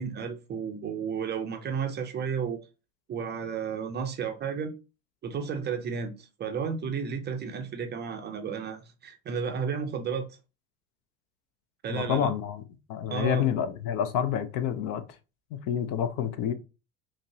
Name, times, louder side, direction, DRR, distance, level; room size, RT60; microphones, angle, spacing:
voice 1, 0.0-2.6 3.1-4.7 5.2-6.1 6.4-10.3 11.8-12.3 13.1-13.5, right 6 dB, 25° right, 0.5 m, -32 dB
voice 2, 11.9-12.6 12.9-15.0 15.7-16.5, left 9 dB, 55° left, 0.6 m, -28 dB
5.1 x 2.0 x 2.6 m
supercardioid pair, 100°, 40 cm